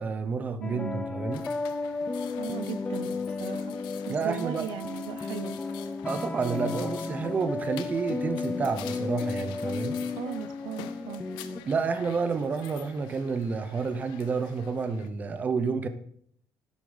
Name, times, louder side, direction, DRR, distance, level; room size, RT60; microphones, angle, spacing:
voice 1, 0.0-1.4 4.1-4.7 6.0-10.0 11.7-15.9, right 5 dB, 20° right, 10 dB, 0.7 m, -30 dB
sound 1, 0.6-11.6, left 4 dB, 10° left, 0.4 m, -34 dB
voice 2, 0.6-1.1 2.4-3.8 4.1-5.6 10.0-11.2, right 10 dB, 70° right, 14 dB, 0.6 m, -37 dB
sound 2, 1.3-15.1, left 12 dB, 90° left, 0.9 m, -48 dB
11.0 x 8.2 x 4.0 m, 0.62 s
cardioid pair, 175°, 8 cm